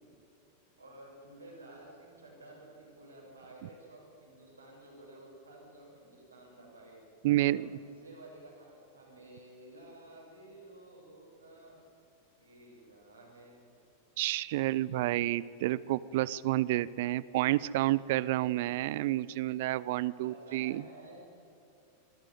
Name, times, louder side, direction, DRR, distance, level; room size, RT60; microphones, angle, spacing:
voice 1, 0.8-7.0 7.5-11.8 12.4-13.9 20.2-21.2, right 1 dB, 80° right, -3 dB, 7.2 m, -53 dB
voice 2, 7.2-7.7 14.2-20.8, right 16 dB, 50° right, 20 dB, 0.5 m, -30 dB
24.5 x 12.5 x 9.3 m, 2.8 s
figure-of-eight pair, 90°, 0 cm